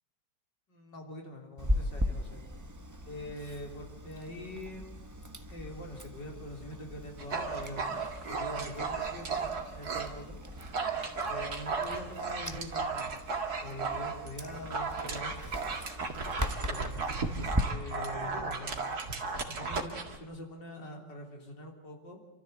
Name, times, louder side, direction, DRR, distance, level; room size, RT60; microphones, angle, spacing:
voice 1, 0.7-2.5 3.0-4.9 5.5-8.0 8.3-10.4 11.3-13.1 13.6-15.5 16.4-16.9 17.4-18.8 19.5-22.2, left 1 dB, 65° left, 2 dB, 4.2 m, -44 dB
Chewing mastication, 1.6-17.6, equal, 10° right, 1.0 m, -39 dB
Dog, 7.2-10.1 10.5-20.2, right 4 dB, 55° right, 2.6 m, -35 dB
28.5 x 13.5 x 8.1 m, 0.97 s
omnidirectional pair, 2.0 m